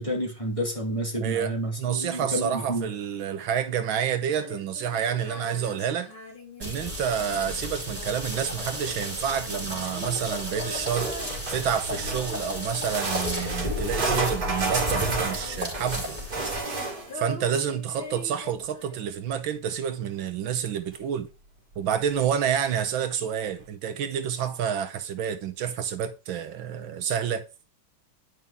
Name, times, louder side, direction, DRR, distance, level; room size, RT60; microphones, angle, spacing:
voice 1, 0.0-2.9, equal, 15° left, 2.6 m, -30 dB
voice 2, 1.2-6.1 6.6-11.1 11.5-16.2 17.1-21.3 21.8-27.4, right 8 dB, 75° right, 1.7 m, -29 dB
Female singing, 4.2-14.5 14.8-19.2, left 3 dB, 90° left, 4.7 m, -43 dB
sound 1, 6.6-16.6, left 1 dB, 20° right, 4.2 m, -33 dB
sound 2, 11.0-12.3 12.9-17.2 20.5-20.6 20.9-21.0 21.7-21.8, right 3 dB, 50° right, 2.7 m, -31 dB
11.0 x 5.6 x 3.5 m
omnidirectional pair, 2.2 m